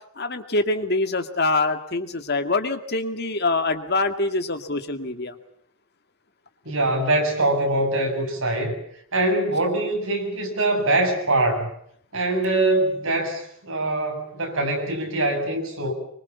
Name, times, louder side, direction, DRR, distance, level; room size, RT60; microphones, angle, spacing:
voice 1, 0.2-5.3, left 2 dB, 50° left, 7 dB, 2.1 m, -24 dB
voice 2, 6.7-8.8 9.1-11.7 12.1-15.9, right 2 dB, 65° right, 3 dB, 7.5 m, -23 dB
26.5 x 24.5 x 7.1 m, 0.68 s
head